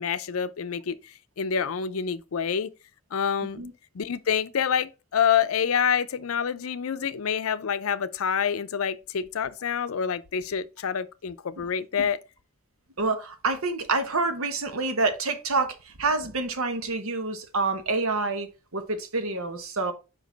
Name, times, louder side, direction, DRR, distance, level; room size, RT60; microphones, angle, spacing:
voice 1, 0.0-2.7 3.1-3.6 3.9-12.2, left 7 dB, 90° left, 0.5 m, -27 dB
voice 2, 13.0-18.5 18.7-19.9, right 3 dB, 90° right, 1.1 m, -27 dB
5.2 x 5.1 x 3.9 m
head